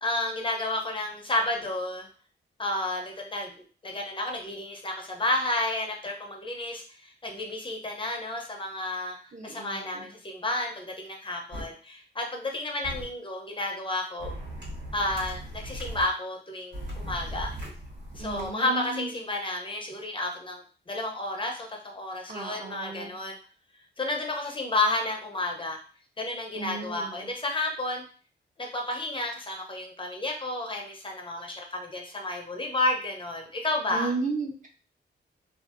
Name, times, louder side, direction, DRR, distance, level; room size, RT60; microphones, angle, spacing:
voice 1, 0.0-2.1 2.6-3.5 3.8-9.1 9.4-14.3 14.9-17.5 18.1-23.4 24.0-25.8 26.2-28.0 28.6-34.1, left 2 dB, 30° left, 1 dB, 0.6 m, -31 dB
voice 2, 9.3-10.0 18.2-19.1 22.3-23.1 26.6-27.1 33.9-34.7, right 3 dB, 40° right, 0 dB, 0.7 m, -34 dB
sound 1, 11.5-11.6 12.8-13.0 14.2-16.0 16.7-18.5, right 1 dB, 70° right, 1.3 m, -38 dB
2.6 x 2.5 x 2.4 m, 0.38 s
cardioid pair, 100°, 19 cm